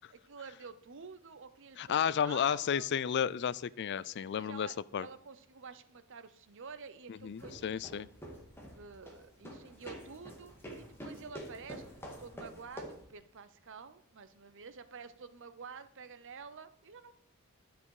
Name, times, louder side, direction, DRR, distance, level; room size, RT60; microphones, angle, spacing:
voice 1, 0.1-2.9 4.2-8.0 8.7-17.1, right 5 dB, 55° right, 12 dB, 0.7 m, -50 dB
voice 2, 1.8-4.7 4.9-5.1 7.1-8.1, left 8 dB, 50° left, 19 dB, 0.3 m, -32 dB
sound 1, 7.2-13.1, equal, 10° left, 2.0 m, -48 dB
11.5 x 7.5 x 4.8 m, 0.70 s
head